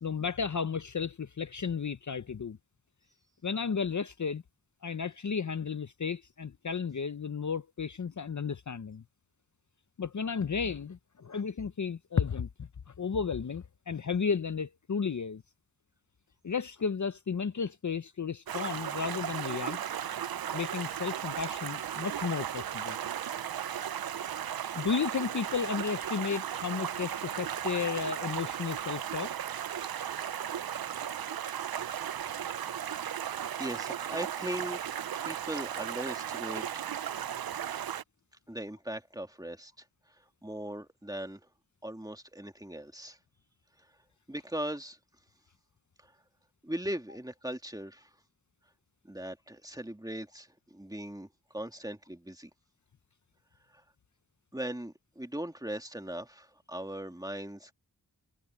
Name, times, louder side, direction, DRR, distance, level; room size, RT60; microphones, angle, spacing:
voice 1, 0.0-2.6 3.4-4.4 4.8-9.0 10.0-12.5 12.9-15.4 16.4-19.8 20.5-23.0 24.8-29.3, left 6 dB, 55° left, 0.7 m, -33 dB
Stream, 18.5-38.0, right 9 dB, 80° right, 0.5 m, -36 dB
voice 2, 33.6-34.9 35.3-36.9 38.5-39.7 40.4-41.4 41.8-43.2 44.3-45.0 46.0-46.1 46.6-48.1 49.0-52.5 53.7-53.8 54.5-57.7, right 1 dB, 10° right, 2.4 m, -39 dB
wide cardioid pair, 60°, 36 cm